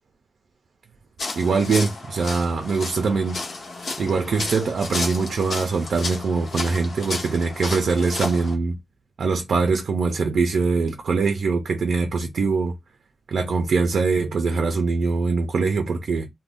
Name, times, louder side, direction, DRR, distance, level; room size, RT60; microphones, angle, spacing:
sound 1, 1.2-8.5, left 3 dB, 80° left, 0.8 m, -32 dB
voice 1, 1.4-3.4 4.0-8.8 9.2-12.8 13.3-16.3, right 4 dB, 85° right, 0.4 m, -23 dB
2.4 x 2.1 x 3.4 m
wide cardioid pair, 175°, 0 cm